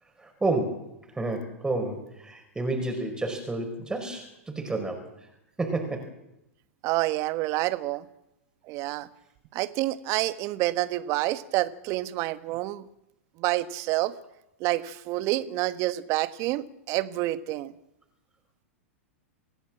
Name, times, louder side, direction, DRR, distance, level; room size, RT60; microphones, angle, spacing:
voice 1, 0.2-0.8 1.1-5.1 5.6-6.1, right 2 dB, 10° right, 4 dB, 4.9 m, -30 dB
voice 2, 6.8-8.0 8.7-9.1 9.5-12.8 13.4-14.1 14.6-17.7, right 17 dB, 45° right, 12 dB, 1.4 m, -28 dB
27.0 x 16.5 x 7.4 m, 0.85 s
hypercardioid pair, 100°, 7 cm